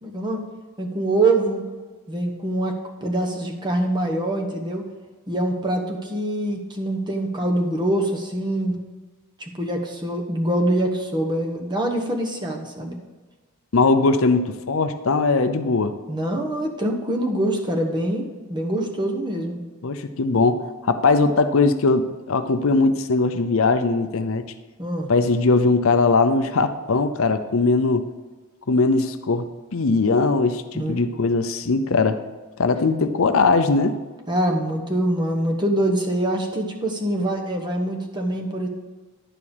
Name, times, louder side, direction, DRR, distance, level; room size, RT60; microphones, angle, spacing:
voice 1, 0.0-0.4 0.8-1.6 2.1-4.8 5.3-8.8 9.4-13.0 16.1-19.6 24.8-25.1 30.7-31.0 34.3-38.7, right 1 dB, 20° right, 2 dB, 1.2 m, -24 dB
voice 2, 13.7-16.0 19.8-24.4 25.1-28.1 28.7-32.2 32.6-34.0, left 3 dB, 65° left, 9 dB, 0.6 m, -20 dB
11.0 x 4.8 x 7.1 m, 1.3 s
head